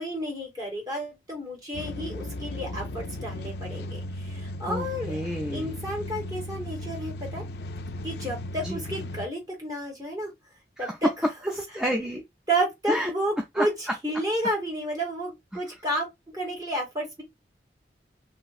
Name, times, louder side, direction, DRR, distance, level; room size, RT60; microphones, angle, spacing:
voice 1, 0.0-5.2 5.5-7.4 8.0-10.3 10.8-11.1 12.5-13.7 14.0-17.2, right 1 dB, 20° right, 1.7 m, -31 dB
sound 1, 1.7-9.3, left 1 dB, 65° left, 0.3 m, -36 dB
voice 2, 4.6-5.7 8.6-8.8 10.8-11.0 11.5-12.3 12.9-13.1 13.5-13.7, equal, 5° right, 0.4 m, -30 dB
3.2 x 2.9 x 2.3 m
head